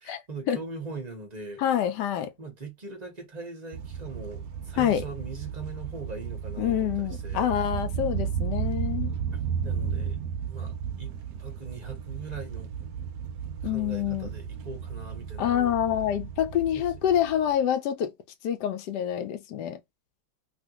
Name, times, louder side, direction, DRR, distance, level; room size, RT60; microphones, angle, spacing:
voice 1, 0.0-1.6 2.4-7.5 9.3-10.2 10.5-11.1 11.4-12.7 13.6-15.7, right 3 dB, 35° right, 0.7 m, -41 dB
voice 2, 1.6-2.3 4.8-5.0 6.6-9.1 13.6-14.3 15.4-18.1 18.4-19.8, left 10 dB, 70° left, 1.1 m, -26 dB
sound 1, 3.7-17.5, right 7 dB, 75° right, 0.8 m, -34 dB
3.1 x 2.4 x 2.8 m
omnidirectional pair, 2.1 m